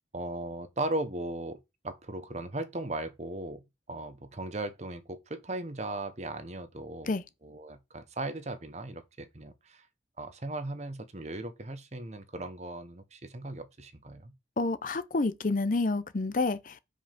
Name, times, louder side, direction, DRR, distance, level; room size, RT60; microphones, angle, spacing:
voice 1, 0.1-1.6 1.8-3.6 3.9-7.1 7.4-9.9 10.2-14.3, right 2 dB, 40° right, 0.9 m, -37 dB
voice 2, 14.6-16.8, left 3 dB, 45° left, 0.6 m, -29 dB
5.5 x 5.2 x 5.8 m
head